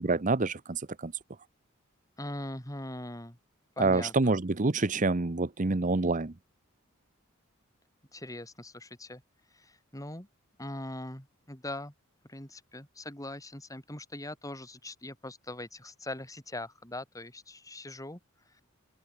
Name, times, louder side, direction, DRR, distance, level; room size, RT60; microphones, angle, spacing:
voice 1, 0.1-1.1 3.8-6.3, right 3 dB, 40° right, 0.8 m, -27 dB
voice 2, 2.2-3.4 3.8-4.4 8.1-9.2 9.5-10.3 10.6-11.9 12.3-18.2, left 1 dB, 15° left, 4.6 m, -41 dB
head